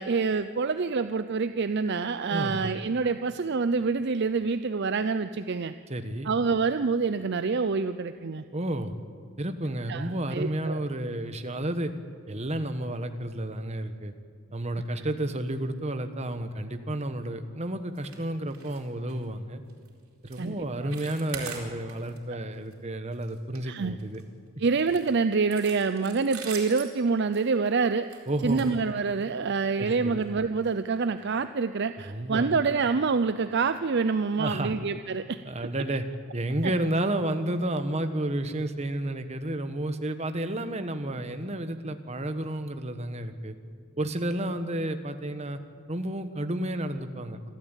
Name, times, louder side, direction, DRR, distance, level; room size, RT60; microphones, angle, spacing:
voice 1, 0.0-5.7 6.2-8.4 9.9-10.8 20.4-20.6 20.8-20.9 23.6-24.0 24.6-28.1 28.4-35.4 36.6-36.7, right 4 dB, 50° right, 11 dB, 0.5 m, -26 dB
voice 2, 2.3-2.7 5.9-6.3 8.5-8.9 9.4-11.9 12.3-14.1 14.5-19.6 20.2-24.2 28.3-28.7 29.8-30.3 32.1-32.5 34.4-34.7 35.4-36.0 36.3-43.5 44.0-45.6 45.9-47.5, right 1 dB, 30° right, 8 dB, 1.2 m, -31 dB
sound 1, 17.9-18.2 18.5-18.8 19.1-19.3 19.7-19.9 20.3-20.5 20.8-22.2 22.5-22.7 23.1-24.2 24.8-29.4 30.1-30.3 30.6-30.7 31.2-31.3, right 6 dB, 85° right, 4.4 m, -43 dB
27.0 x 12.5 x 9.0 m, 2.1 s
head